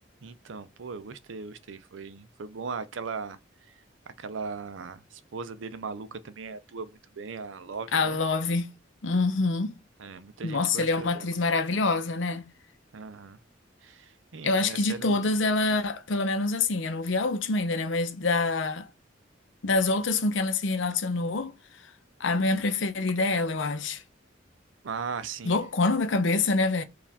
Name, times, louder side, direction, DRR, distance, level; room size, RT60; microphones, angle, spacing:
voice 1, 0.2-3.4 4.2-8.2 10.0-11.3 12.9-13.4 13.8-15.5 24.8-25.6, right 5 dB, 85° right, 0.6 m, -38 dB
voice 2, 7.9-8.7 9.0-9.7 10.4-12.4 14.4-18.9 19.6-21.5 22.2-24.0 25.4-26.8, left 3 dB, 75° left, 0.7 m, -26 dB
4.8 x 2.5 x 3.4 m
head